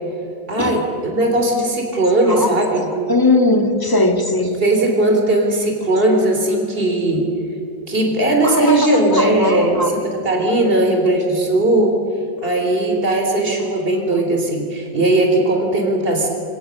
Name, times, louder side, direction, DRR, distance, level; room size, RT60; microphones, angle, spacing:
voice 1, 0.5-2.9 4.5-7.2 7.9-11.9 12.4-16.3, right 2 dB, 30° right, 2 dB, 3.8 m, -18 dB
voice 2, 3.1-4.6 8.4-9.9, left 2 dB, 10° left, 5 dB, 1.8 m, -18 dB
26.0 x 26.0 x 6.6 m, 2.7 s
omnidirectional pair, 2.0 m